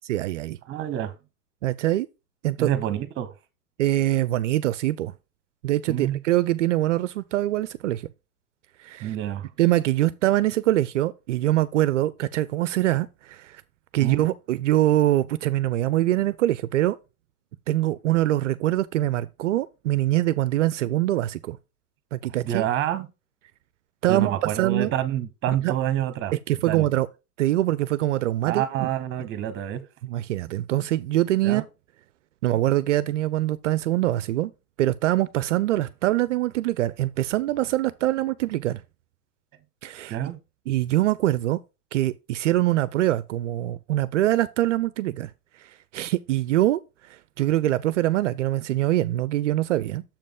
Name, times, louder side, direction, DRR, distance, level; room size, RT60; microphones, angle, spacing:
voice 1, 0.1-0.6 1.6-2.1 2.4-2.7 3.8-5.1 5.6-8.0 8.8-9.1 9.6-13.6 13.9-17.0 17.7-21.6 22.1-22.6 24.0-24.3 24.6-24.9 25.6-25.7 26.5-27.1 27.4-28.9 30.0-31.7 32.4-34.5 34.8-38.8 39.8-40.1 40.7-41.6 41.9-45.3 45.9-46.8 47.4-50.0, right 14 dB, 55° right, 0.5 m, -23 dB
voice 2, 0.7-1.1 2.6-3.3 5.9-6.2 9.0-9.5 14.0-14.3 22.4-23.1 24.1-26.3 26.7-26.9 28.5-29.9 31.4-31.6 40.1-40.4, right 11 dB, 25° right, 1.1 m, -27 dB
7.0 x 5.2 x 3.6 m
hypercardioid pair, 105°, 45 cm